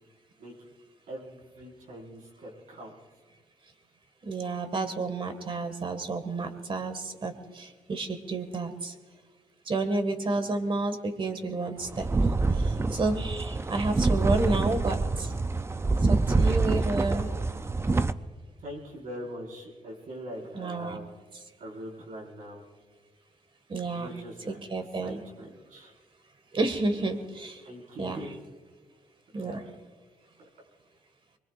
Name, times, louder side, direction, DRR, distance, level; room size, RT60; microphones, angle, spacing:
voice 1, 1.1-2.9 10.2-10.5 18.6-21.1 21.6-22.6 23.9-24.6 25.0-25.9 27.6-28.3 29.3-29.6, equal, 80° right, -3 dB, 5.0 m, -42 dB
voice 2, 4.2-8.9 9.7-12.1 12.5-15.3 16.1-17.3 20.5-21.0 23.7-24.1 24.5-25.2 26.5-27.6 28.0-28.2 29.3-29.6, right 3 dB, 40° right, 8 dB, 1.9 m, -30 dB
sound 1, 11.8-18.1, right 3 dB, 20° right, 0.5 m, -26 dB
24.5 x 22.5 x 2.5 m, 1.5 s
wide cardioid pair, 130°, 13 cm